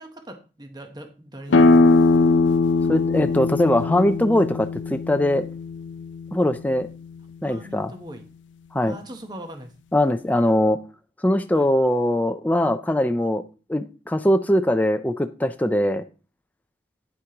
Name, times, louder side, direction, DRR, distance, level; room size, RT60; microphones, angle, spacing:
voice 1, 0.0-2.3 7.4-8.2 8.8-9.7 11.5-11.7, right 1 dB, 20° right, 5 dB, 1.0 m, -41 dB
sound 1, 1.5-6.9, left 3 dB, 85° left, 0.5 m, -20 dB
voice 2, 2.9-5.5 6.3-6.9 7.4-7.9 8.7-9.0 9.9-10.8 11.2-13.4 13.7-16.0, left 1 dB, 10° left, 8 dB, 0.4 m, -21 dB
9.3 x 8.0 x 2.9 m, 0.35 s
head